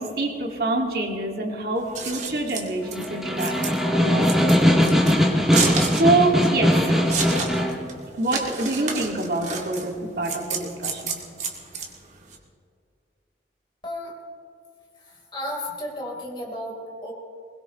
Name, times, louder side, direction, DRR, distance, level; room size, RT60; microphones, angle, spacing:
voice 1, 0.0-3.6 4.0-4.8 5.9-7.1 8.1-11.2, right 2 dB, 55° right, 1 dB, 2.1 m, -25 dB
Scissors, 1.8-12.4, right 4 dB, 40° right, 2.2 m, -30 dB
Snare drum, 2.8-7.8, equal, ahead, 1.9 m, -20 dB
voice 2, 13.8-14.1 15.0-17.1, left 1 dB, 25° left, -2 dB, 3.8 m, -33 dB
22.0 x 21.0 x 3.1 m, 2.4 s
head